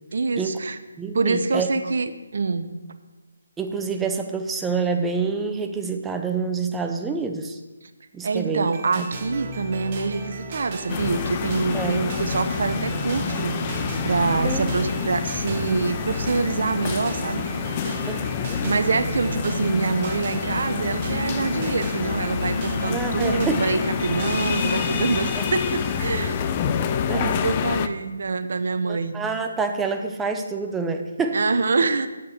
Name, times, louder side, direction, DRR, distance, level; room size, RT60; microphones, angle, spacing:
voice 1, 0.1-0.8 1.1-2.7 8.2-13.8 14.0-17.5 18.6-26.4 27.1-29.2 31.3-32.1, right 4 dB, 60° right, 10 dB, 0.9 m, -25 dB
voice 2, 1.0-1.8 3.6-7.6 8.1-9.1 11.7-12.2 14.4-14.7 18.1-18.6 22.9-23.6 25.4-25.5 27.1-27.4 28.9-31.4, right 4 dB, 10° right, 5 dB, 0.7 m, -27 dB
sound 1, 8.7-26.8, right 3 dB, 30° right, 1.4 m, -34 dB
sound 2, 10.9-27.9, left 7 dB, 25° left, 0.5 m, -27 dB
7.7 x 6.7 x 8.1 m, 1.2 s
figure-of-eight pair, 150°, 0 cm